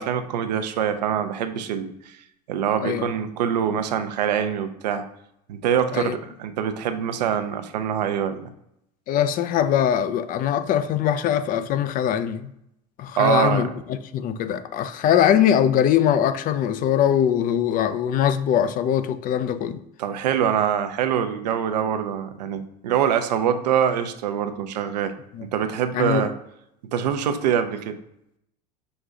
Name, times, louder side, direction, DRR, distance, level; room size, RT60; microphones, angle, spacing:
voice 1, 0.0-1.9 2.5-5.0 5.5-8.5 13.2-13.7 20.0-25.1 25.4-26.3 26.9-28.0, right 8 dB, 90° right, 0.5 m, -24 dB
voice 2, 9.1-12.5 13.0-19.8 25.3-25.4 25.9-26.2, left 9 dB, 45° left, 0.4 m, -22 dB
5.1 x 2.3 x 3.8 m
hypercardioid pair, 90°, 20 cm